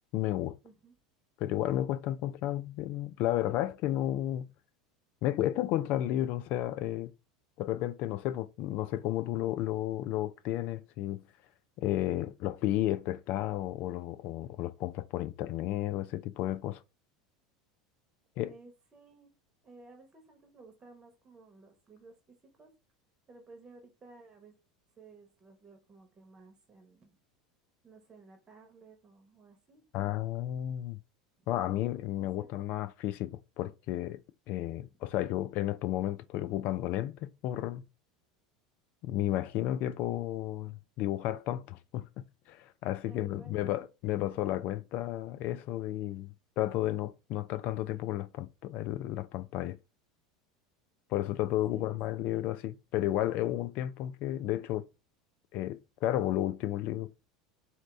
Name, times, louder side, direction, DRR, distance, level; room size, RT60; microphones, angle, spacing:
voice 1, 0.1-0.6 1.4-4.5 5.2-7.1 7.6-11.2 11.8-16.8 18.4-18.5 29.9-31.0 31.5-34.2 34.5-37.8 39.0-42.0 42.5-49.8 51.1-54.8 55.5-57.1, left 13 dB, 55° left, 0.4 m, -32 dB
voice 2, 0.6-0.9 18.5-19.3 19.6-22.7 23.3-24.5 25.0-27.2 27.8-30.3 31.4-31.5 32.2-32.5 34.6-34.9 43.0-43.7 51.7-52.0 52.3-52.6, right 3 dB, 25° right, 1.2 m, -56 dB
4.4 x 2.8 x 3.9 m
hypercardioid pair, 80°, 3 cm